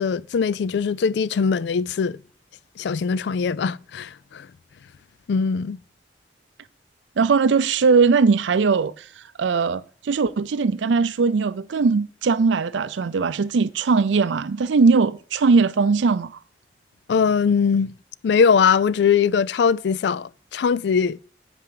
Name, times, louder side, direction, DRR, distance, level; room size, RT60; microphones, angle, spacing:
voice 1, 0.0-2.2 2.8-4.5 5.3-5.8 17.1-17.9 18.2-21.2, left 6 dB, 65° left, 0.3 m, -21 dB
voice 2, 7.2-9.1 9.4-16.3, right 4 dB, 80° right, 0.5 m, -20 dB
8.7 x 5.0 x 7.6 m
head